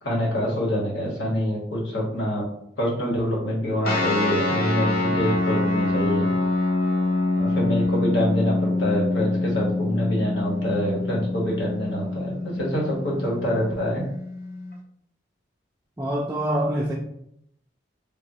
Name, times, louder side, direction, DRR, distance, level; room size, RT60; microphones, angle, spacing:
voice 1, 0.0-2.4 2.8-6.3 7.3-14.1, equal, 75° left, -3 dB, 1.0 m, -26 dB
sound 1, 3.8-14.8, left 2 dB, 50° left, 0.5 m, -25 dB
voice 2, 16.0-16.9, right 1 dB, 10° right, -4 dB, 0.3 m, -25 dB
3.4 x 2.0 x 2.7 m, 0.72 s
head